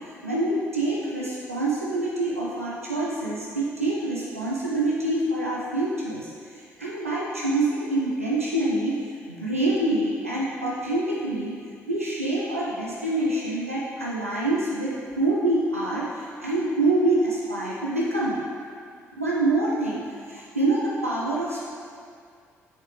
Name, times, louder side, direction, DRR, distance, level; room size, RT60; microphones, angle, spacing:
voice 1, 0.2-6.3 6.8-9.0 9.3-11.5 11.9-18.4 19.2-21.6, right 2 dB, 90° right, -6 dB, 0.7 m, -26 dB
8.0 x 6.8 x 3.3 m, 2.2 s
figure-of-eight pair, 45°, 7 cm